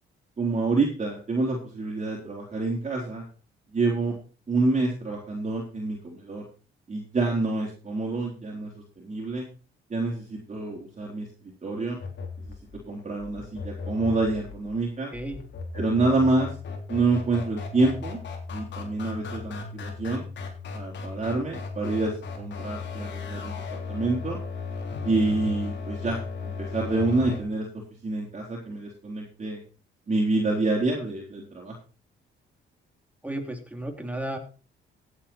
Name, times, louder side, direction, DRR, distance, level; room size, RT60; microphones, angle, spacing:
voice 1, 0.4-3.2 3.7-4.2 4.5-6.4 6.9-8.7 9.0-9.4 9.9-11.3 11.6-12.0 12.9-15.1 15.7-16.5 16.9-18.2 18.5-20.2 20.7-23.6 23.9-24.4 25.0-27.7 28.0-29.6 30.1-31.8, right 3 dB, 35° right, -2 dB, 3.9 m, -27 dB
sound 1, 12.0-27.4, left 4 dB, 65° left, 3.7 m, -36 dB
voice 2, 33.2-34.4, right 1 dB, 5° right, 4 dB, 3.0 m, -33 dB
15.5 x 8.1 x 4.4 m, 0.36 s
cardioid pair, 90°, 20 cm